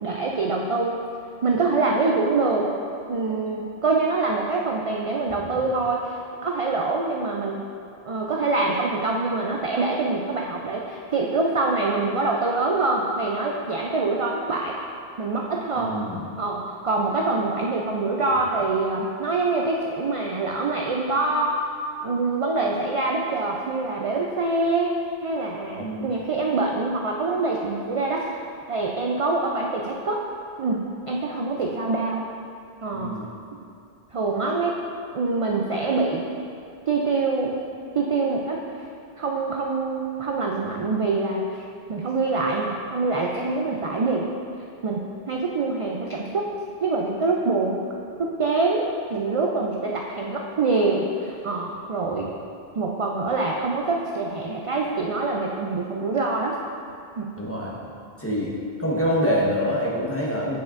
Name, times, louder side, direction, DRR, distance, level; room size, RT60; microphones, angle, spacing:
voice 1, 0.0-1.0 1.4-2.7 3.1-7.6 8.0-14.7 15.2-15.9 16.4-21.6 22.0-24.9 25.2-28.2 28.7-30.2 30.6-32.3 32.8-33.1 34.1-34.7 35.1-36.2 36.9-37.5 38.0-38.6 39.2-41.6 41.9-44.3 44.8-46.5 46.8-47.9 48.2-52.3 52.8-56.5 57.2-57.3, right 3 dB, 55° right, -1 dB, 0.3 m, -25 dB
voice 2, 15.8-16.2 25.8-26.1 32.9-33.2 57.4-57.7 58.2-58.5 58.8-60.6, equal, 15° left, -5 dB, 1.0 m, -25 dB
8.3 x 6.3 x 2.5 m, 2.6 s
omnidirectional pair, 1.1 m